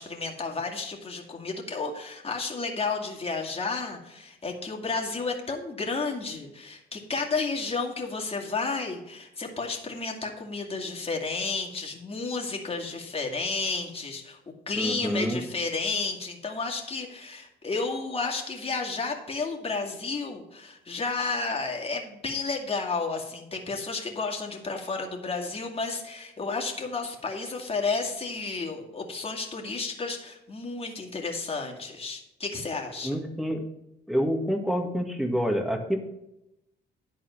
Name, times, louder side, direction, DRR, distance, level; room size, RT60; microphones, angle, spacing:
voice 1, 0.0-14.4 14.7-33.2, left 4 dB, 30° left, 1 dB, 2.3 m, -32 dB
voice 2, 14.8-15.4 33.0-33.6 34.1-36.0, equal, ahead, 3 dB, 2.0 m, -27 dB
11.0 x 4.3 x 7.3 m, 0.86 s
cardioid pair, 90°, 20 cm